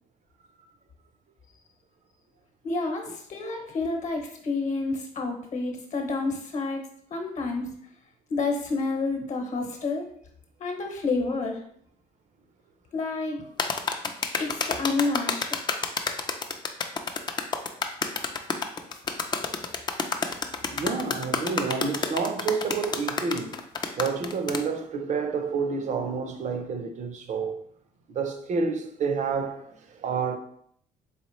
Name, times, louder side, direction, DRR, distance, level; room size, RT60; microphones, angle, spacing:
voice 1, 2.6-6.8 7.1-7.7 8.3-10.0 10.6-11.6 12.9-13.5 14.4-15.3, left 3 dB, 45° left, 1.0 m, -29 dB
sound 1, 13.6-24.6, left 4 dB, 25° left, 0.4 m, -29 dB
voice 2, 20.7-23.6 24.0-27.6 28.1-30.4, right 5 dB, 45° right, 0.6 m, -29 dB
4.2 x 3.4 x 3.0 m
cardioid pair, 110°, 17 cm